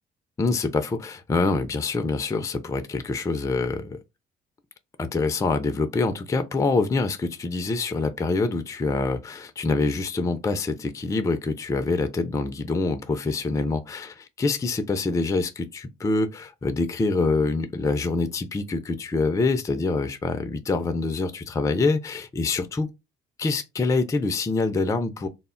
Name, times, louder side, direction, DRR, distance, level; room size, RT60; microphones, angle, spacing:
voice 1, 0.4-4.0 5.0-22.9 23.4-25.3, left 3 dB, 15° left, 0.3 m, -25 dB
2.1 x 2.0 x 3.6 m
cardioid pair, 90°, 20 cm